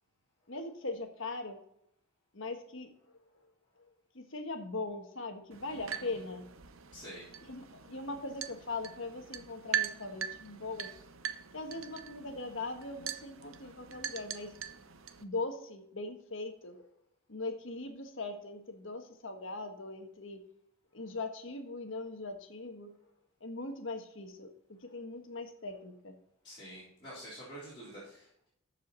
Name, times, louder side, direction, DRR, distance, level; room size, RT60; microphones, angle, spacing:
voice 1, 0.5-1.6 2.3-2.9 3.8-6.5 7.0-7.1 7.5-10.9 11.5-14.5 15.2-16.9 17.3-20.4 20.9-22.9 23.4-26.1, left 3 dB, 60° left, 5 dB, 1.5 m, -40 dB
sound 1, 5.5-15.2, right 8 dB, 70° right, 0.8 m, -41 dB
voice 2, 5.7-6.2 6.9-7.3 13.6-13.7 26.4-28.5, right 1 dB, 20° left, -10 dB, 3.8 m, -48 dB
14.0 x 5.0 x 4.1 m, 0.73 s
head